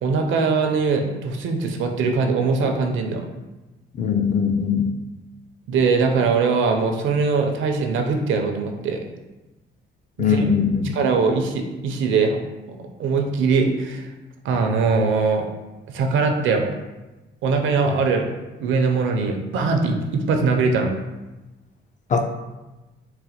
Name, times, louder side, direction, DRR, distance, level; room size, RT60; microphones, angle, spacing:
voice 1, 0.0-3.2 5.7-9.0 10.3-10.4 10.9-12.4 12.7-14.1 14.4-15.5 15.9-16.7 17.4-18.2 18.6-20.9, right 4 dB, 75° right, 4 dB, 0.5 m, -21 dB
voice 2, 4.0-4.9 10.2-11.0 22.1-22.2, left 6 dB, 40° left, 5 dB, 0.4 m, -20 dB
4.0 x 2.1 x 2.8 m, 1.1 s
cardioid pair, 90°, 20 cm